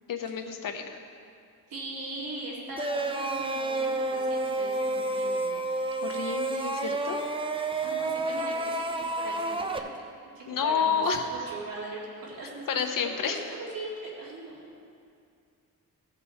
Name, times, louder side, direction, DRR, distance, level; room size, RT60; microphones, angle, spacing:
voice 1, 0.1-1.0 6.0-7.2 10.5-11.5 12.7-13.4, left 6 dB, 70° left, 5 dB, 0.9 m, -29 dB
voice 2, 1.7-5.6 7.8-10.0 10.3-14.8, right 2 dB, 85° right, -5 dB, 2.4 m, -40 dB
sound 1, 2.8-9.8, right 2 dB, 15° right, 0.5 m, -30 dB
15.5 x 5.4 x 4.2 m, 2.4 s
cardioid pair, 100°, 34 cm